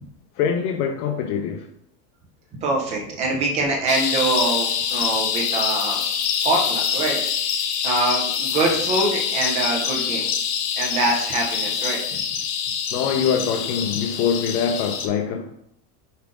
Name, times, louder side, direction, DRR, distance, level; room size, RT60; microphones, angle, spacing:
voice 1, 0.4-1.7 12.9-15.5, left 7 dB, 65° left, 0.8 m, -24 dB
voice 2, 2.5-6.0 6.4-7.2 7.8-10.3 10.8-12.2, right 2 dB, 15° right, 0.3 m, -24 dB
sound 1, 3.9-15.1, left 7 dB, 40° left, 0.8 m, -25 dB
5.7 x 4.7 x 3.7 m
supercardioid pair, 165°, 49 cm